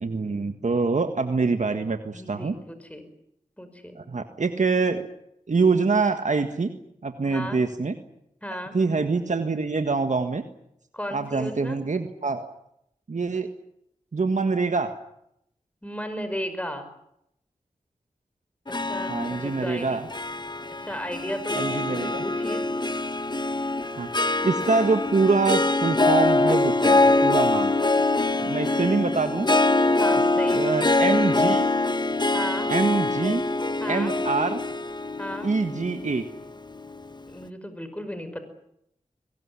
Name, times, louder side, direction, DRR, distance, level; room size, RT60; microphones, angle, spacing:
voice 1, 0.0-2.5 3.9-5.1 5.5-6.7 7.0-7.9 8.7-10.4 11.1-12.5 13.1-13.5 14.1-14.9 19.1-20.0 21.5-22.2 24.0-24.1 24.4-27.7 28.4-29.5 30.5-31.7 32.7-33.4 33.9-34.6 35.4-36.2, right 4 dB, 65° right, 7 dB, 1.7 m, -25 dB
voice 2, 2.1-3.0 3.6-4.0 7.2-7.6 8.4-8.8 10.9-11.8 15.8-16.9 18.8-20.0 20.8-22.7 28.9-29.1 30.0-30.7 32.3-32.7 33.8-34.1 35.2-35.5 37.3-38.4, equal, 10° left, 9 dB, 5.5 m, -35 dB
Harp, 18.7-37.1, left 2 dB, 35° left, 1.3 m, -24 dB
22.5 x 20.5 x 9.9 m, 0.78 s
cardioid pair, 45°, 13 cm